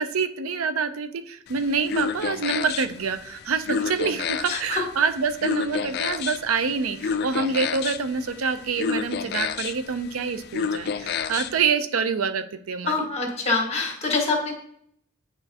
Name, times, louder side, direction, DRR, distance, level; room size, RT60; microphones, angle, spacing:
voice 1, 0.0-13.1, right 5 dB, 90° right, 10 dB, 0.5 m, -26 dB
sound 1, 1.5-11.7, left 6 dB, 50° left, 0.3 m, -31 dB
voice 2, 4.5-4.8 12.9-14.5, left 3 dB, 30° left, 1 dB, 1.6 m, -25 dB
8.9 x 4.4 x 2.8 m, 0.68 s
head